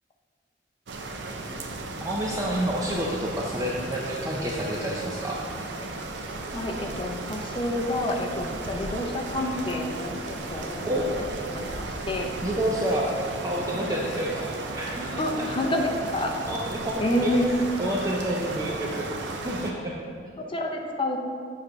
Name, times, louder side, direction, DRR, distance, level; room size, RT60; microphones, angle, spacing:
sound 1, 0.9-19.7, right 2 dB, 80° right, 0.6 m, -35 dB
voice 1, 2.0-5.4 10.8-11.1 12.4-13.2 13.4-15.7 16.5-17.3 17.8-20.0, right 1 dB, 20° right, -3 dB, 0.5 m, -29 dB
voice 2, 6.5-12.3 13.7-14.0 15.2-16.3 17.0-17.5 20.5-21.2, left 1 dB, 30° left, 2 dB, 0.6 m, -29 dB
7.3 x 3.2 x 4.6 m, 2.3 s
head